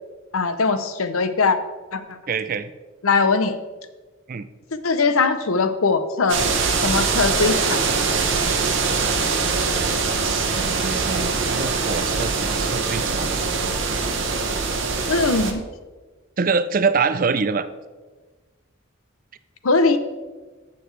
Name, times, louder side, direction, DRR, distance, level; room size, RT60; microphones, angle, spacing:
voice 1, 0.3-1.6 1.9-2.2 3.0-3.5 4.8-6.4 6.8-7.8 15.1-15.6 19.6-20.0, left 4 dB, 85° left, 10 dB, 0.7 m, -20 dB
voice 2, 2.3-2.7 4.3-4.5 10.2-13.3 16.4-17.7, right 5 dB, 40° right, 13 dB, 0.4 m, -25 dB
sound 1, 6.3-15.5, right 4 dB, 60° right, 0.9 m, -23 dB
14.5 x 6.9 x 3.3 m, 1.3 s
head